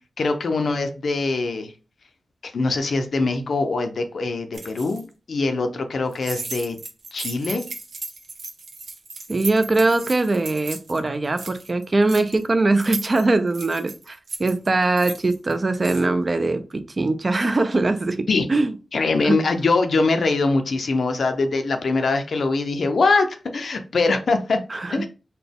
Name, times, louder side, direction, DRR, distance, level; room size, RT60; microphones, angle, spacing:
voice 1, 0.2-1.7 2.4-6.8 7.1-7.6 18.3-18.5 18.9-24.6 24.9-25.1, left 3 dB, 60° left, 7 dB, 0.5 m, -22 dB
sound 1, 4.5-5.0 6.1-11.0 11.2-12.4 12.8-16.0, right 3 dB, 60° right, 0.8 m, -36 dB
voice 2, 9.3-18.7 19.2-19.4 24.7-25.1, right 2 dB, 30° right, 9 dB, 0.4 m, -22 dB
4.1 x 2.2 x 3.4 m, 0.33 s
wide cardioid pair, 150°, 0 cm